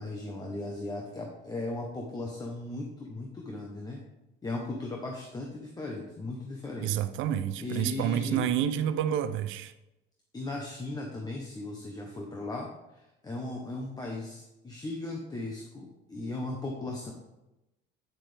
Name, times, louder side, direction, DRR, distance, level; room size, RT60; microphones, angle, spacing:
voice 1, 0.0-4.0 4.4-6.9 7.6-8.5 10.3-17.1, left 2 dB, 20° left, 0 dB, 1.0 m, -37 dB
voice 2, 6.8-9.7, right 10 dB, 75° right, 12 dB, 0.6 m, -29 dB
9.3 x 7.2 x 3.4 m, 0.95 s
cardioid pair, 145°, 20 cm